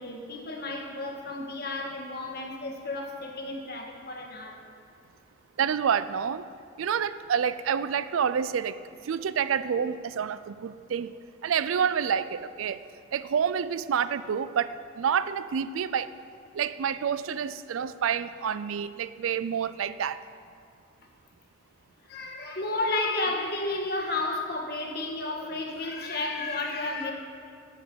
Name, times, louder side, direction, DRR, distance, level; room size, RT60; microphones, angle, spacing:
voice 1, 0.0-4.6 22.1-27.1, left 2 dB, 50° left, 2 dB, 1.5 m, -32 dB
voice 2, 5.6-6.4 6.8-8.8 9.0-11.1 11.4-12.8 13.1-16.1 16.5-20.2, right 7 dB, 85° right, 15 dB, 0.4 m, -28 dB
11.0 x 7.6 x 8.6 m, 2.3 s
head